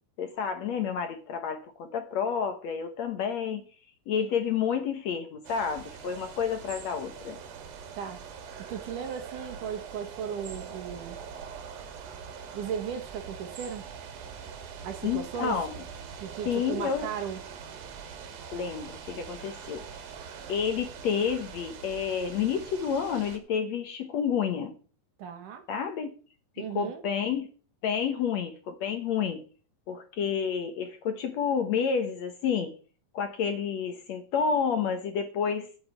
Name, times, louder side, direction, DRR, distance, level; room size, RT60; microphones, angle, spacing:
voice 1, 0.2-3.6 4.1-7.4 15.0-15.8 16.5-17.1 18.5-19.8 20.5-24.7 25.7-26.1 26.6-27.5 27.8-29.4 29.9-32.7 33.1-35.7, left 7 dB, 60° left, 2.1 m, -30 dB
sound 1, 5.4-23.4, right 6 dB, 90° right, 3.6 m, -43 dB
voice 2, 8.6-11.2 12.5-13.8 14.8-15.6 16.2-17.4 25.2-25.6 26.6-27.0, right 8 dB, 65° right, 2.9 m, -36 dB
9.2 x 7.4 x 8.4 m
omnidirectional pair, 4.0 m